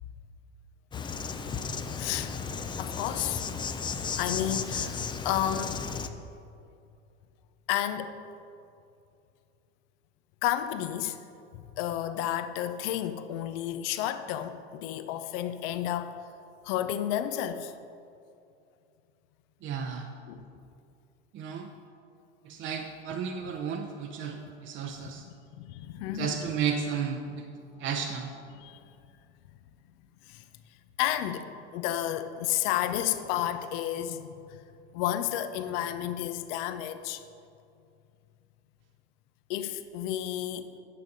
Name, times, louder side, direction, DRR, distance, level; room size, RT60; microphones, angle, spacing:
Insect, 0.9-6.1, left 5 dB, 15° left, 0.4 m, -34 dB
voice 1, 2.0-2.3 2.8-3.5 4.2-5.9 7.7-8.1 10.4-11.2 11.5-16.1 16.6-17.7 20.3-20.4 25.0-26.4 28.5-28.8 30.3-30.4 31.0-34.3 34.9-37.2 39.5-40.7, left 11 dB, 60° left, 0.7 m, -31 dB
voice 2, 19.6-20.1 21.3-21.7 22.4-25.2 26.1-27.5 27.8-28.3, right 7 dB, 35° right, 0.7 m, -33 dB
9.7 x 6.7 x 5.2 m
hypercardioid pair, 100°, 33 cm